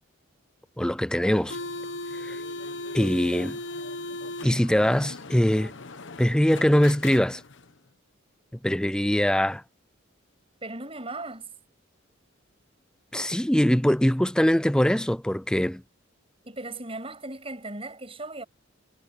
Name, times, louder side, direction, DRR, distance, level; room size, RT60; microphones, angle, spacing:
voice 1, 0.8-1.6 2.2-2.4 2.9-3.6 4.4-5.7 6.2-7.4 8.6-9.6 13.1-15.8, equal, 5° left, 0.5 m, -22 dB
sound 1, 1.2-7.7, left 2 dB, 65° left, 1.0 m, -38 dB
voice 2, 10.6-11.5 16.4-18.4, right 2 dB, 30° right, 7.6 m, -37 dB
head